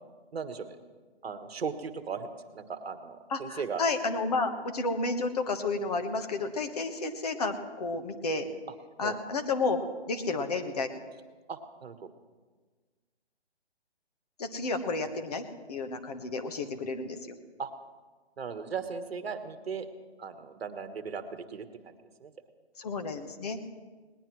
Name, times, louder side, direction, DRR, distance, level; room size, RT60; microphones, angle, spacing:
voice 1, 0.3-0.8 1.2-3.8 9.0-9.2 11.5-12.1 17.6-17.7 18.4-19.9 20.2-22.3, right 5 dB, 65° right, 9 dB, 1.4 m, -37 dB
voice 2, 3.3-8.5 9.0-9.8 10.1-10.9 14.4-17.3 22.8-23.8, left 3 dB, 35° left, 7 dB, 1.2 m, -31 dB
21.0 x 19.0 x 3.1 m, 1.4 s
hypercardioid pair, 165°, 33 cm